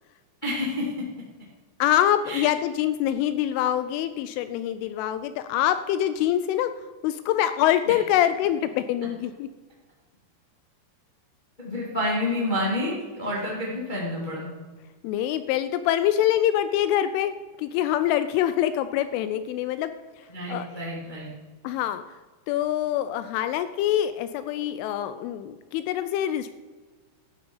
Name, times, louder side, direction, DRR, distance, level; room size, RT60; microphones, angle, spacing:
voice 1, 0.4-1.0 2.2-2.4 7.8-7.9 11.6-14.5 20.3-21.3, left 1 dB, 70° left, -5 dB, 0.4 m, -29 dB
voice 2, 1.8-6.7 7.0-9.5 15.0-17.3 17.6-19.9 20.5-20.7 21.6-22.0 22.5-26.5, left 11 dB, 85° left, 11 dB, 2.9 m, -25 dB
12.5 x 8.8 x 5.5 m, 1.3 s
omnidirectional pair, 5.9 m